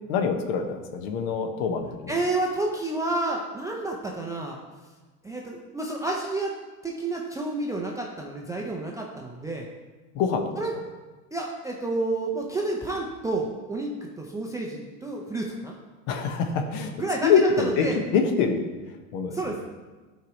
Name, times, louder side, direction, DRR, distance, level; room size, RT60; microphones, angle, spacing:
voice 1, 0.1-2.1 10.1-10.5 16.1-16.9 17.2-17.8 18.1-18.6 19.1-19.4, left 5 dB, 55° left, 6 dB, 1.2 m, -24 dB
voice 2, 2.1-4.6 5.2-6.5 6.8-9.7 10.6-10.7 11.3-15.7 17.0-18.0 19.3-19.6, right 2 dB, 10° right, -1 dB, 0.4 m, -30 dB
12.0 x 4.8 x 3.0 m, 1.3 s
hypercardioid pair, 110°, 49 cm